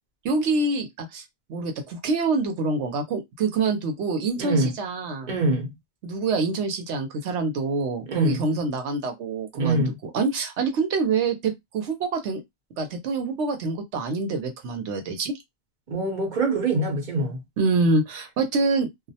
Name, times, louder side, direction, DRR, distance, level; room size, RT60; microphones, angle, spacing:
voice 1, 0.2-1.2 1.5-5.3 6.0-12.4 12.8-15.3 17.6-19.1, right 3 dB, 90° right, 1.0 m, -26 dB
voice 2, 4.4-4.7 5.3-5.7 8.1-8.4 9.6-9.9 15.9-17.4, right 2 dB, 50° right, 0.8 m, -24 dB
2.3 x 2.0 x 2.7 m
omnidirectional pair, 1.1 m